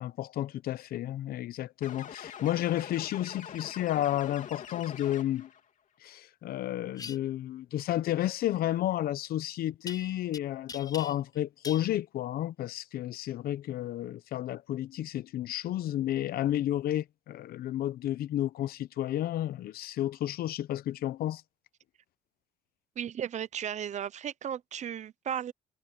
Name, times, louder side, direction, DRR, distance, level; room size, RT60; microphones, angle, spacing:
voice 1, 0.0-5.5 6.0-21.4, left 13 dB, 65° left, 0.8 m, -32 dB
sound 1, 1.8-5.6, left 8 dB, 50° left, 2.8 m, -44 dB
sound 2, 6.9-7.2 9.9-10.4 10.7-11.4 11.6-11.9, left 5 dB, 20° left, 0.4 m, -42 dB
voice 2, 23.0-25.5, right 9 dB, 45° right, 0.7 m, -35 dB
cardioid pair, 110°, 17 cm